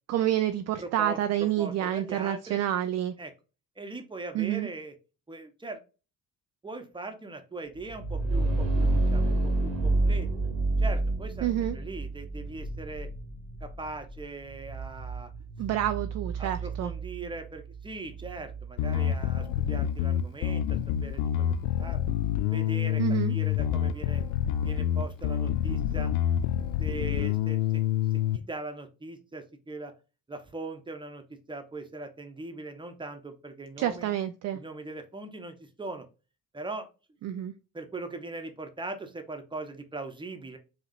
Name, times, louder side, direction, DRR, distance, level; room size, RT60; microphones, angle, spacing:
voice 1, 0.1-3.1 4.3-4.7 11.4-11.8 15.6-16.9 23.0-23.4 33.8-34.6 37.2-37.5, right 12 dB, 35° right, 9 dB, 0.4 m, -28 dB
voice 2, 0.8-2.6 3.2-3.3 3.8-4.9 5.3-5.8 6.6-10.3 10.8-13.1 13.6-15.3 16.4-22.0 22.5-23.0 23.3-24.2 24.6-26.1 26.8-27.8 28.3-29.9 30.3-34.1 34.5-36.0 36.5-36.9 37.7-40.6, right 2 dB, 10° right, 6 dB, 1.0 m, -40 dB
sound 1, 7.8-19.4, right 2 dB, 75° right, 1.3 m, -29 dB
Bass guitar, 18.8-28.4, left 10 dB, 55° left, 0.5 m, -27 dB
4.9 x 2.9 x 2.6 m, 0.31 s
figure-of-eight pair, 50°, 47 cm